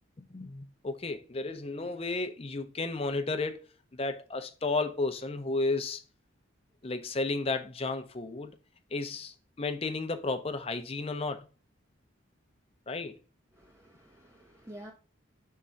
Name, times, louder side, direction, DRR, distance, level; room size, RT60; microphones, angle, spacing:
voice 1, 0.2-3.6 3.9-6.0 6.8-8.5 8.9-11.5 12.9-13.2, left 3 dB, 30° left, 0.6 m, -33 dB
voice 2, 13.5-14.9, right 1 dB, 15° right, 0.6 m, -49 dB
5.6 x 3.6 x 5.1 m
head